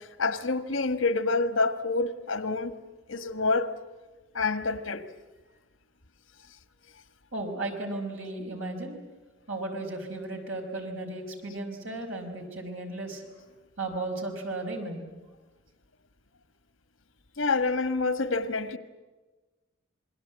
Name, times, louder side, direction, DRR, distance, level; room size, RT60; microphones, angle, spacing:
voice 1, 0.0-2.7 3.1-3.7 4.3-5.0 17.4-18.8, left 3 dB, 80° left, 1.5 m, -27 dB
voice 2, 7.3-9.0 9.5-13.2 13.8-15.1, right 2 dB, 90° right, 5.4 m, -35 dB
27.5 x 22.0 x 8.2 m
head